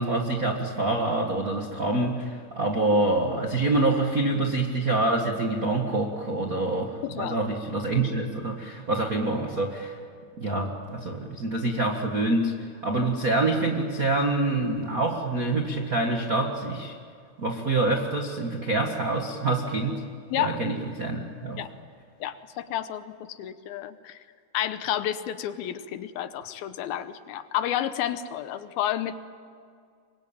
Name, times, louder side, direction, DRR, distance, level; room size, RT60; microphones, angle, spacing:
voice 1, 0.0-10.0 10.4-12.5 12.8-17.0 17.4-20.0 20.4-21.6, right 2 dB, 80° right, 2 dB, 0.7 m, -26 dB
voice 2, 7.0-7.4 20.3-20.6 21.6-21.7 22.2-24.2 24.5-29.2, left 11 dB, 75° left, 11 dB, 2.5 m, -30 dB
26.0 x 22.5 x 9.0 m, 2.2 s
omnidirectional pair, 4.7 m